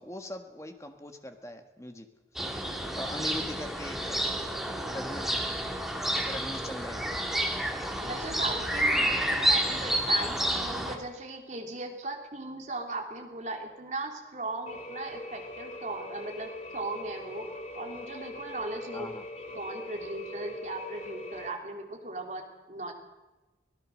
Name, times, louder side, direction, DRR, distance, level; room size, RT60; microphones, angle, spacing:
voice 1, 0.0-2.1 2.3-2.5 3.0-4.2 4.9-5.6 6.3-7.0 18.9-19.2, left 1 dB, 15° left, 6 dB, 1.7 m, -40 dB
sound 1, 2.4-11.0, right 1 dB, ahead, 2.1 m, -29 dB
voice 2, 8.0-19.1 19.5-22.9, right 2 dB, 40° right, 2 dB, 3.2 m, -38 dB
sound 2, 14.7-21.5, left 2 dB, 40° left, 2.8 m, -42 dB
24.5 x 17.5 x 6.4 m, 1.1 s
head